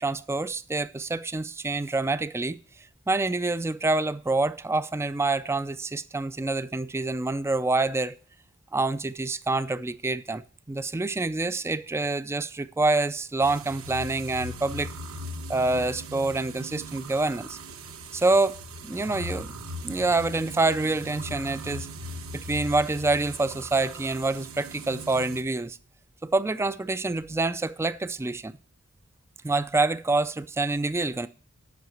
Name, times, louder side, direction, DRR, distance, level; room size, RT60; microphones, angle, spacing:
voice 1, 0.0-2.6 3.1-8.1 8.7-10.4 10.7-14.9 15.5-17.6 18.1-18.6 18.8-19.5 19.8-21.9 22.3-25.8 26.2-28.6 29.4-31.3, right 2 dB, 10° right, 0.3 m, -26 dB
sound 1, 13.4-25.4, right 1 dB, 70° right, 1.1 m, -39 dB
8.4 x 5.7 x 7.8 m
head